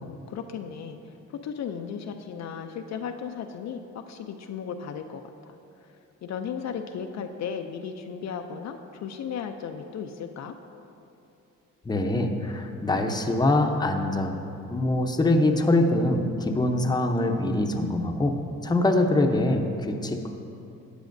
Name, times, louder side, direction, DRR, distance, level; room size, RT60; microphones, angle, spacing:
voice 1, 0.0-5.5 6.2-10.5, left 7 dB, 60° left, 5 dB, 0.5 m, -35 dB
voice 2, 11.8-14.4 14.7-18.4 18.6-20.3, left 2 dB, 15° left, 3 dB, 0.7 m, -24 dB
13.0 x 8.2 x 2.6 m, 2.7 s
cardioid pair, 90°, 30 cm